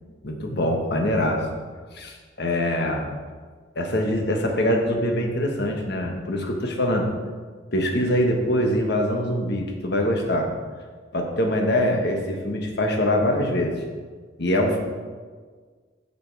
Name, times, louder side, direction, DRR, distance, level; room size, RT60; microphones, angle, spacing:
voice 1, 0.2-1.5 1.9-3.1 3.7-7.1 7.7-10.5 11.1-13.7 14.4-14.8, left 1 dB, 60° left, 2 dB, 1.3 m, -23 dB
8.7 x 6.8 x 4.6 m, 1.6 s
head